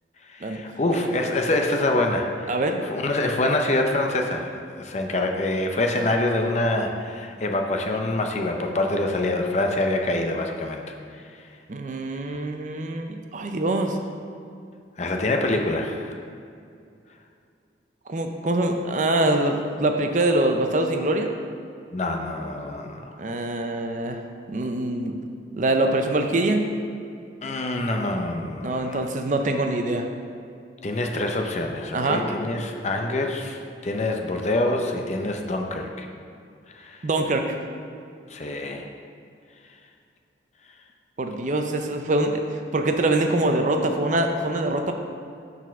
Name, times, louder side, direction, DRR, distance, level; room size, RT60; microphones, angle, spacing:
voice 1, 0.3-2.5 2.8-10.8 15.0-16.2 21.9-23.2 27.4-29.0 30.8-36.1 36.7-37.0 38.3-38.8, left 2 dB, 35° left, 3 dB, 0.5 m, -25 dB
voice 2, 2.5-2.8 11.7-14.0 18.1-21.3 23.2-24.2 24.5-25.2 25.5-26.7 28.6-30.1 31.9-32.3 37.0-37.6 41.2-44.9, right 2 dB, 40° right, 5 dB, 0.5 m, -24 dB
6.8 x 4.2 x 5.9 m, 2.4 s
head